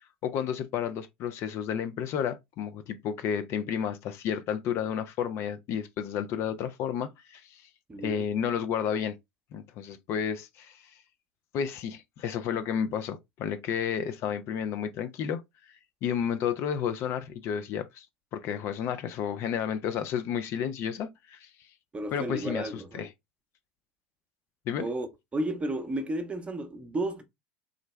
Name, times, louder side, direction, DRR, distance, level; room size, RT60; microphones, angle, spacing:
voice 1, 0.2-7.6 8.0-9.2 9.5-10.8 11.5-15.4 16.0-18.1 18.3-21.5 22.1-23.1 24.7-24.9, left 8 dB, 50° left, 0.5 m, -31 dB
voice 2, 7.9-8.3 21.9-23.0 24.8-25.1 25.3-27.2, right 1 dB, 20° right, 0.8 m, -32 dB
3.7 x 2.1 x 3.1 m
hypercardioid pair, 80°, 6 cm